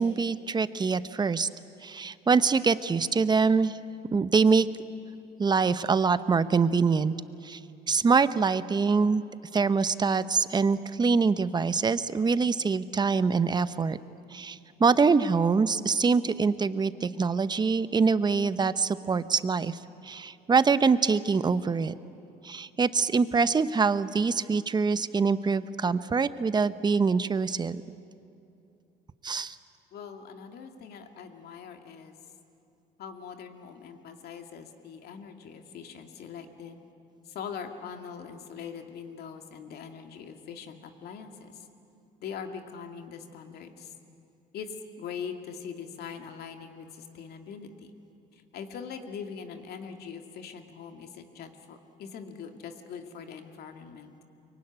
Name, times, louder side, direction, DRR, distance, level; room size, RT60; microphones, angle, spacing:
voice 1, 0.0-1.5 1.8-3.8 4.1-4.7 5.4-7.1 7.4-7.6 7.9-9.2 9.5-14.0 14.3-19.8 20.0-21.9 22.4-27.8 29.2-29.6, right 5 dB, 25° right, 14 dB, 0.8 m, -24 dB
voice 2, 29.9-32.2 33.0-36.8 37.2-41.7 42.2-43.9 44.5-47.9 48.3-54.1, left 6 dB, 70° left, 5 dB, 2.3 m, -42 dB
23.5 x 23.5 x 9.9 m, 2.7 s
cardioid pair, 110°, 17 cm